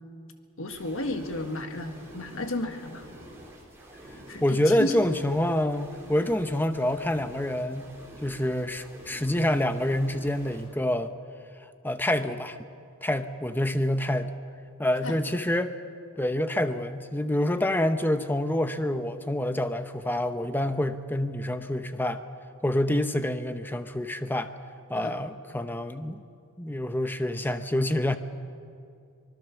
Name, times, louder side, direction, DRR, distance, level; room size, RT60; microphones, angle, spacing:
voice 1, 0.6-3.0 4.3-5.0 15.0-15.2 25.0-25.2, left 1 dB, 65° left, 6 dB, 1.8 m, -33 dB
sound 1, 0.7-10.7, right 1 dB, 10° right, 4.4 m, -48 dB
voice 2, 4.4-7.9 8.2-11.1 11.8-12.6 13.0-14.3 14.8-15.7 16.2-22.2 22.6-24.5 24.9-26.2 26.6-28.2, left 1 dB, 10° left, 9 dB, 0.8 m, -27 dB
25.0 x 20.5 x 7.1 m, 2.4 s
head